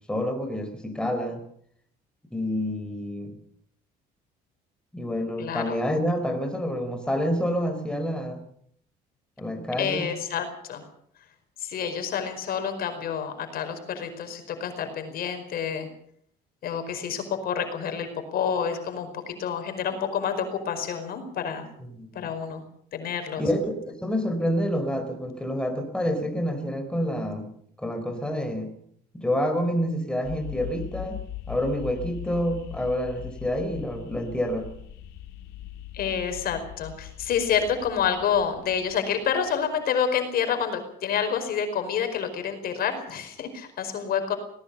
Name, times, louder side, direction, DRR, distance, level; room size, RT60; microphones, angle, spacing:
voice 1, 0.1-1.4 2.3-3.4 4.9-8.4 9.4-10.1 21.9-22.3 23.4-27.5 27.8-28.7 29.1-34.7, equal, 5° left, 5 dB, 4.2 m, -28 dB
voice 2, 5.4-5.8 9.8-10.8 11.6-15.9 16.6-21.7 22.1-22.6 22.9-23.4 35.9-44.3, left 7 dB, 65° left, 6 dB, 4.9 m, -28 dB
sound 1, 30.2-39.5, left 12 dB, 85° left, 2.7 m, -41 dB
21.5 x 19.0 x 6.9 m, 0.66 s
cardioid pair, 110°, 17 cm